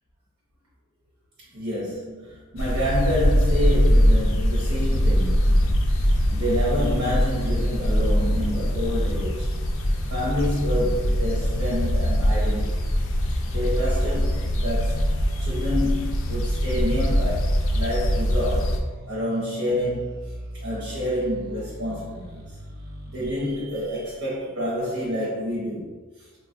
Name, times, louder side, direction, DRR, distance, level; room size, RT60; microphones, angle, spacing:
voice 1, 1.5-9.5 9.8-12.8 13.5-15.1 15.4-18.8 19.1-22.4 23.1-25.9 26.2-26.3, left 1 dB, 75° right, -7 dB, 0.9 m, -28 dB
sound 1, 2.6-18.8, equal, 65° left, 0.4 m, -22 dB
sound 2, 6.0-24.5, equal, 45° right, 0.5 m, -37 dB
4.1 x 2.3 x 2.4 m, 1.3 s
head